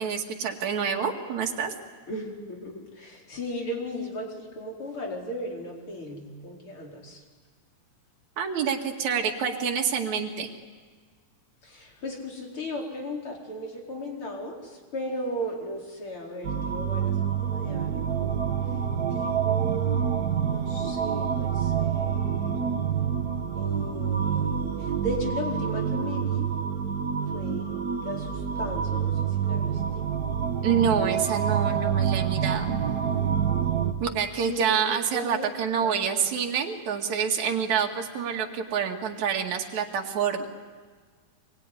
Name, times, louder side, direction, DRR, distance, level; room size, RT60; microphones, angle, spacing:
voice 1, 0.0-1.7 8.4-10.5 30.6-32.8 34.0-40.5, right 7 dB, 65° right, 1 dB, 3.3 m, -27 dB
voice 2, 2.1-7.2 11.6-18.4 19.1-20.1 20.5-22.6 23.5-26.5 27.3-29.8 34.4-34.8 35.1-35.5 35.8-36.3, equal, 40° left, -1 dB, 5.2 m, -36 dB
sound 1, 16.4-33.9, right 8 dB, 50° right, 1.2 m, -27 dB
25.0 x 23.0 x 9.9 m, 1.5 s
omnidirectional pair, 3.5 m